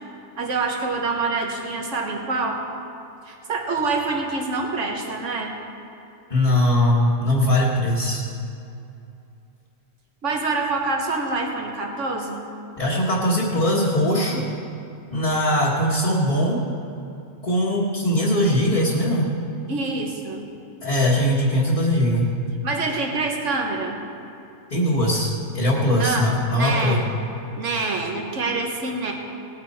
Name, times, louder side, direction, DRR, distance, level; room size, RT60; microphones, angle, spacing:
voice 1, 0.4-2.6 3.3-5.5 10.2-12.4 19.7-20.5 22.6-24.0 26.0-27.0 27.6-29.1, right 3 dB, 65° right, 1 dB, 1.8 m, -26 dB
voice 2, 6.3-8.2 12.8-14.5 15.1-16.7 17.4-19.3 20.8-22.3 24.7-27.0, left 1 dB, 30° left, -7 dB, 1.6 m, -20 dB
19.0 x 9.0 x 4.3 m, 2.7 s
omnidirectional pair, 1.4 m